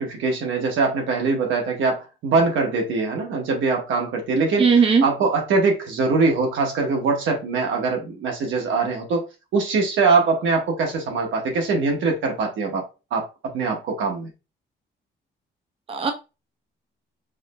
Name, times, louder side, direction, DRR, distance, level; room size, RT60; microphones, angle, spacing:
voice 1, 0.0-4.7 5.0-9.3 9.5-12.8 13.1-13.3 13.5-14.3, right 4 dB, 75° right, 1.0 m, -22 dB
voice 2, 4.6-5.0 15.9-16.1, right 5 dB, 30° right, 0.6 m, -17 dB
4.7 x 2.0 x 2.2 m
cardioid pair, 90°, 20 cm